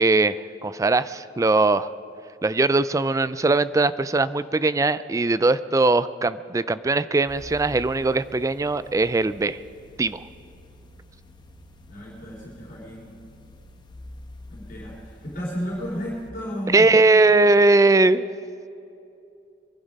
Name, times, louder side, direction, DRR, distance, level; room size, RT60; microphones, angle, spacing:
voice 1, 0.0-1.9 2.4-9.6 10.0-10.2 16.7-18.2, right 3 dB, 20° right, 15 dB, 0.3 m, -20 dB
sound 1, 7.3-16.3, left 1 dB, 25° left, 1.1 m, -47 dB
voice 2, 11.9-13.1 14.5-16.9, equal, 50° left, -6 dB, 3.6 m, -33 dB
24.0 x 11.0 x 5.3 m, 2.7 s
head